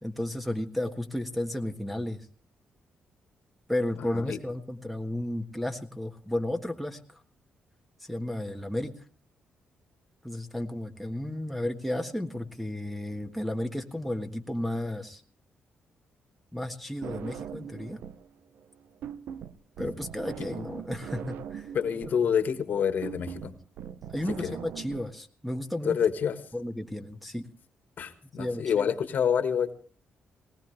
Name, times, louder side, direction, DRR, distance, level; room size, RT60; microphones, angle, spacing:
voice 1, 0.0-2.2 3.7-7.2 8.0-8.9 10.2-15.2 16.5-18.0 19.8-21.7 24.1-26.0 26.5-27.5 28.4-28.9, left 1 dB, ahead, 3 dB, 1.6 m, -33 dB
voice 2, 4.0-4.4 19.8-19.9 20.4-20.5 21.7-23.5 24.4-24.5 25.8-26.3 28.0-29.7, left 7 dB, 65° left, 9 dB, 1.6 m, -27 dB
sound 1, 17.0-18.3 18.5-25.0, right 9 dB, 80° right, 0.8 m, -41 dB
19.5 x 19.0 x 3.4 m, 0.41 s
cardioid pair, 90°, 3 cm